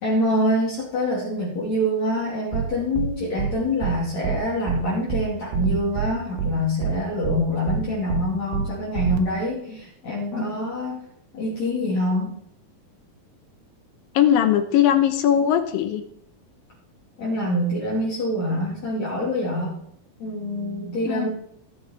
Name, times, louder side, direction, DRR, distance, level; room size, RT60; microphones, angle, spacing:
voice 1, 0.0-11.0 11.3-12.4 17.2-19.7 20.2-21.3, left 1 dB, 50° left, -6 dB, 4.0 m, -25 dB
sound 1, 2.5-2.7 3.0-3.1 3.4-3.5 3.8-4.0 4.2-4.4 4.7-4.8 5.1-5.2 5.5-6.1 6.4-6.5 6.8-7.0 7.2-7.4 7.7-7.8 8.1-8.2 8.5-8.7 9.0-9.2, right 8 dB, 70° right, 2.4 m, -25 dB
voice 2, 14.1-16.0 21.1-21.3, left 10 dB, 75° left, 9 dB, 2.5 m, -19 dB
18.5 x 7.1 x 4.6 m, 0.69 s
omnidirectional pair, 4.3 m